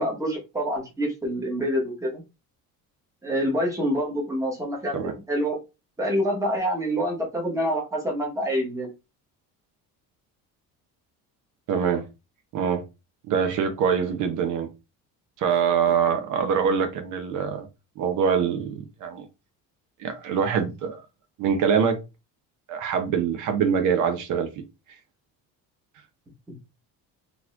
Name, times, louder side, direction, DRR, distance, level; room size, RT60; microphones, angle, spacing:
voice 1, 0.0-2.2 3.2-5.6 6.0-8.9 26.5-26.6, equal, 10° right, 1.2 m, -26 dB
voice 2, 11.7-12.0 12.5-12.8 13.3-14.7 15.4-17.7 18.0-19.3 20.0-21.0 21.4-22.0 22.7-24.5, right 7 dB, 55° right, 0.8 m, -24 dB
3.9 x 3.0 x 2.4 m
cardioid pair, 165°, 36 cm